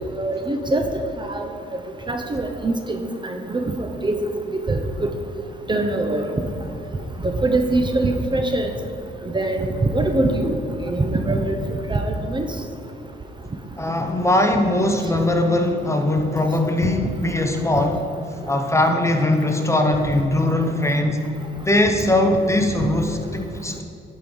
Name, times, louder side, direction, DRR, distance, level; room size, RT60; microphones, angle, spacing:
voice 1, 0.2-0.9 1.2-1.4 2.1-5.1 5.7-6.2 7.2-8.7 9.3-10.6 10.8-11.6 11.9-12.4 17.0-17.1, right 2 dB, 25° right, 5 dB, 0.8 m, -23 dB
voice 2, 13.8-18.0 18.5-21.2 21.6-23.8, left 1 dB, 15° left, 4 dB, 0.9 m, -20 dB
11.0 x 5.2 x 5.5 m, 2.8 s
cardioid pair, 90°, 20 cm